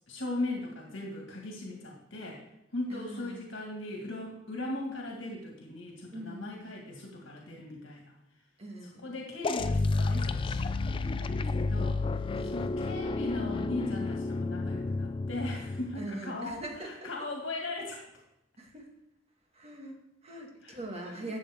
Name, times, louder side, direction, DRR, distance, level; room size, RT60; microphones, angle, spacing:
voice 1, 0.1-2.4 2.7-8.1 8.8-12.0 12.5-18.0 20.6-21.3, left 2 dB, 85° left, 0 dB, 1.8 m, -39 dB
voice 2, 2.9-3.5 6.1-6.7 8.6-9.2 12.3-12.8 16.0-17.1 18.6-18.9 19.5-21.4, right 1 dB, 35° right, 0 dB, 1.8 m, -42 dB
sound 1, 9.4-16.1, left 3 dB, 25° left, 0.4 m, -31 dB
12.5 x 7.4 x 3.5 m, 0.88 s
head